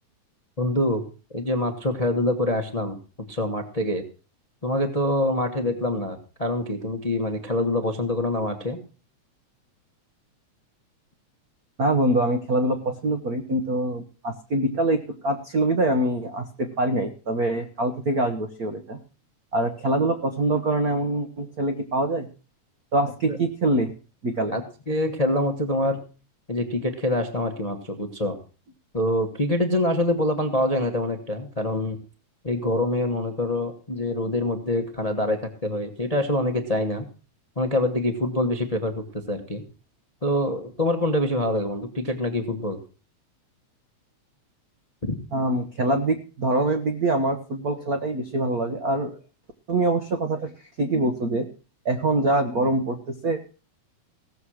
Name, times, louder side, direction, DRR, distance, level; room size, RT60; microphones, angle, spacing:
voice 1, 0.6-1.0 1.3-3.0 3.3-4.0 4.6-8.8 23.3-23.4 24.5-26.0 26.5-28.4 28.9-32.0 32.4-37.1 37.6-39.6 40.2-42.8 45.0-45.2, left 1 dB, 30° left, 5 dB, 0.7 m, -25 dB
voice 2, 11.8-19.0 19.5-22.3 22.9-23.9 24.2-24.5 45.3-49.2 49.7-50.5 50.8-51.5 51.8-53.4, right 2 dB, 60° right, 6 dB, 0.9 m, -24 dB
17.0 x 7.4 x 6.4 m, 0.37 s
omnidirectional pair, 3.3 m